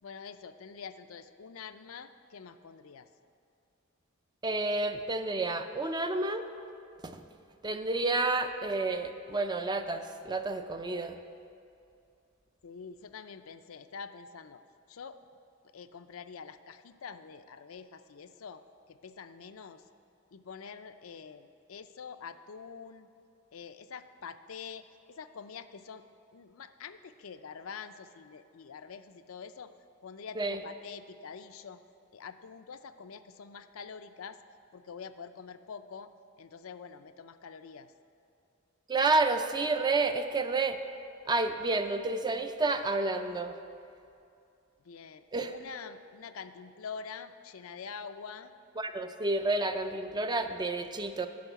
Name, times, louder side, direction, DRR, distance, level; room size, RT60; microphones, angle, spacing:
voice 1, 0.0-3.1 12.6-14.6 14.9-15.2 15.7-18.6 18.9-19.8 20.3-23.1 23.5-26.0 26.3-29.7 30.0-31.8 32.1-34.4 34.7-36.1 36.4-37.9 44.8-48.5, left 6 dB, 70° left, 10 dB, 0.5 m, -46 dB
voice 2, 4.4-6.4 7.0-7.2 7.6-11.2 30.4-30.6 38.9-40.8 41.3-43.5 45.3-45.6 48.8-51.3, right 3 dB, 20° right, 8 dB, 0.5 m, -30 dB
10.5 x 6.4 x 8.0 m, 2.6 s
head